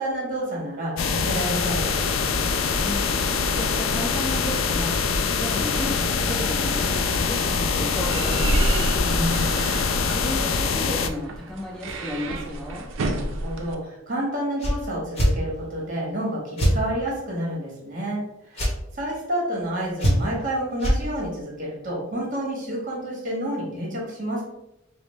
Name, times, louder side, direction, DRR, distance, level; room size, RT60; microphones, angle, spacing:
voice 1, 0.0-1.9 9.0-9.9 13.0-24.4, right 1 dB, 40° right, -2 dB, 1.2 m, -29 dB
sound 1, 1.0-11.1, left 5 dB, 90° left, 0.4 m, -24 dB
voice 2, 2.8-5.0 5.4-8.8 10.1-12.9, left 1 dB, 5° left, -2 dB, 0.7 m, -33 dB
sound 2, 6.1-13.7, right 1 dB, 75° right, 0.5 m, -30 dB
sound 3, 14.6-14.8 15.1-15.3 16.6-16.8 18.5-18.7 20.0-20.4 20.8-21.0, equal, 30° left, 0.9 m, -20 dB
4.9 x 2.0 x 3.1 m, 0.88 s
head